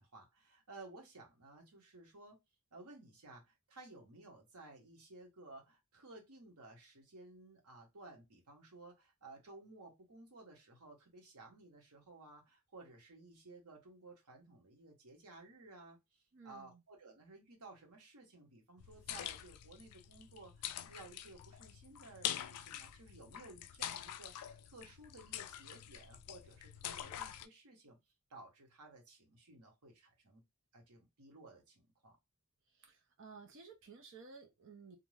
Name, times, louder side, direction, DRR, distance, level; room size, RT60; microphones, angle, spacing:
voice 1, 0.0-2.4 2.7-28.0 28.3-30.4 30.7-32.2, right 2 dB, 90° right, 1.0 m, -56 dB
voice 2, 16.3-16.8 32.7-35.0, right 4 dB, 55° right, 0.5 m, -55 dB
sound 1, 18.8-27.5, left 11 dB, 80° left, 0.3 m, -45 dB
2.5 x 2.2 x 3.1 m
head